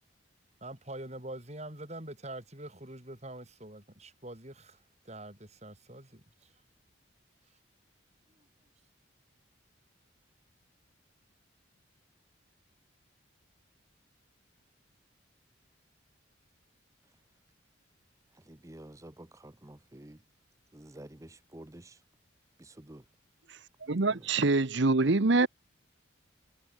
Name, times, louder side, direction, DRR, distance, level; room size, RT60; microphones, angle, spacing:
voice 1, 0.6-4.8 5.0-6.5, right 1 dB, 35° right, 4.9 m, -44 dB
voice 2, 18.4-20.2 20.7-22.0 22.6-23.0 24.1-24.3, right 1 dB, 15° right, 0.7 m, -50 dB
voice 3, 23.8-25.5, right 3 dB, 60° right, 0.9 m, -25 dB
head